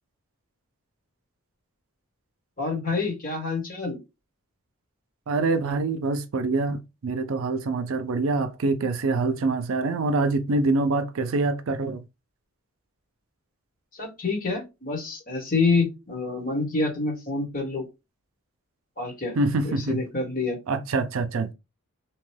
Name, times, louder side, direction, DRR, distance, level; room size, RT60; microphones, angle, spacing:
voice 1, 2.6-4.0 13.9-17.9 19.0-19.4 19.6-20.6, left 3 dB, 40° left, 1.3 m, -27 dB
voice 2, 5.3-12.0 19.4-20.0 20.7-21.5, right 3 dB, 65° right, 0.4 m, -25 dB
2.9 x 2.3 x 3.1 m
head